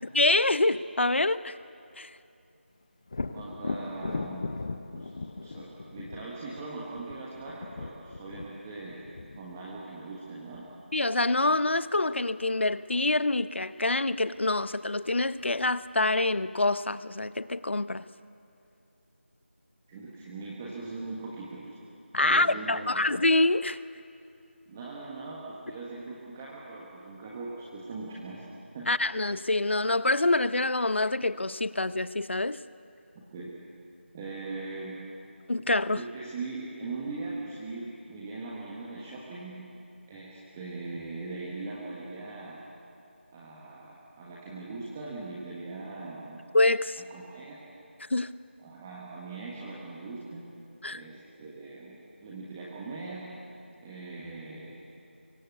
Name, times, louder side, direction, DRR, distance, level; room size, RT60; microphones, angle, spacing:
voice 1, 0.1-1.5 2.0-2.1 10.9-18.0 22.1-23.8 28.9-32.6 35.5-36.0 46.5-47.0 48.1-48.3 50.8-51.0, left 2 dB, 65° left, 15 dB, 0.9 m, -26 dB
Thunder, 3.1-10.8 14.4-14.5 15.0-15.9, left 3 dB, 30° left, 0.8 m, -39 dB
voice 2, 3.3-4.5 4.9-9.0 9.3-10.7 19.9-21.8 22.2-23.1 24.7-28.4 28.7-28.9 33.3-33.6 34.1-35.1 35.9-39.7 40.1-42.6 43.3-46.4 47.1-47.6 48.6-50.5 50.9-53.4 53.8-54.8, right 3 dB, 10° right, -5 dB, 1.5 m, -40 dB
24.0 x 23.5 x 8.4 m, 2.6 s
figure-of-eight pair, 170°, 7 cm